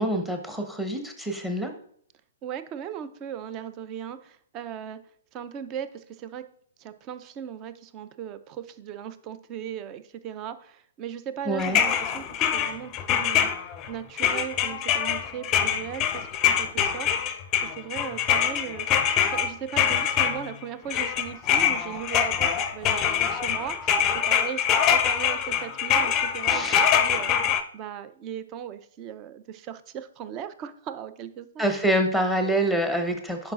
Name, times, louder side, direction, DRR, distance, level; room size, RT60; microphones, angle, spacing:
voice 1, 0.0-1.7 11.5-11.8 26.5-26.9 31.6-33.5, right 1 dB, 5° right, 4 dB, 0.9 m, -26 dB
voice 2, 2.4-5.0 5.3-6.4 6.8-18.9 19.3-27.4 27.7-31.6, right 9 dB, 30° right, 12 dB, 0.5 m, -37 dB
sound 1, 11.6-13.9 14.2-20.6 20.9-27.6, left 8 dB, 25° left, 0.5 m, -24 dB
10.5 x 4.8 x 2.5 m, 0.64 s
figure-of-eight pair, 120°, 0 cm